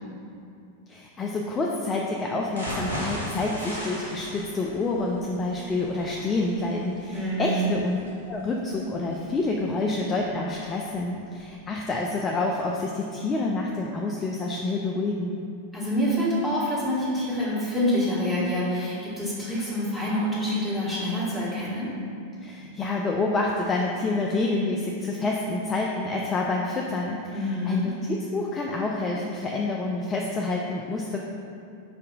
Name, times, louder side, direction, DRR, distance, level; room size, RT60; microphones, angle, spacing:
voice 1, 0.9-8.0 8.3-15.3 22.4-31.2, left 2 dB, 20° left, -1 dB, 0.3 m, -28 dB
sound 1, 2.5-10.5 10.9-11.0 11.4-11.5, equal, 85° right, 0.9 m, -37 dB
voice 2, 7.1-7.7 15.7-21.9 27.3-27.9, equal, ahead, -9 dB, 1.4 m, -26 dB
5.1 x 2.6 x 3.9 m, 2.5 s
figure-of-eight pair, 90°, 0 cm